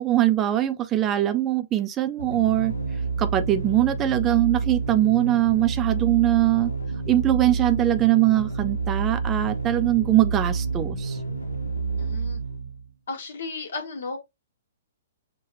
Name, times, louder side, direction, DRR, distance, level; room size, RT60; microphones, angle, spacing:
voice 1, 0.0-2.7 3.2-6.7 7.1-11.2, right 14 dB, 25° right, 0.5 m, -22 dB
sound 1, 2.2-12.9, right 4 dB, 85° left, 0.6 m, -29 dB
voice 2, 12.0-12.4 13.1-14.2, left 3 dB, 65° left, 1.4 m, -34 dB
5.6 x 2.3 x 2.9 m
hypercardioid pair, 125°, 0 cm